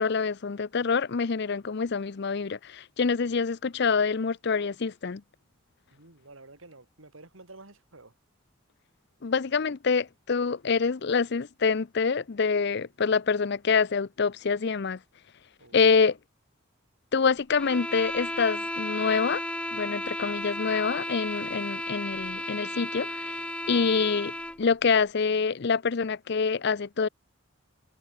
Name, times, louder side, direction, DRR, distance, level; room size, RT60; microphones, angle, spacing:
voice 1, 0.0-5.2 9.2-15.0 15.7-16.2 17.1-19.4 19.7-24.3 24.6-27.1, left 5 dB, 55° left, 0.6 m, -26 dB
voice 2, 5.9-8.1 15.6-15.9, right 2 dB, 90° right, 3.7 m, -51 dB
sound 1, 17.6-24.6, left 1 dB, 5° left, 0.6 m, -34 dB
head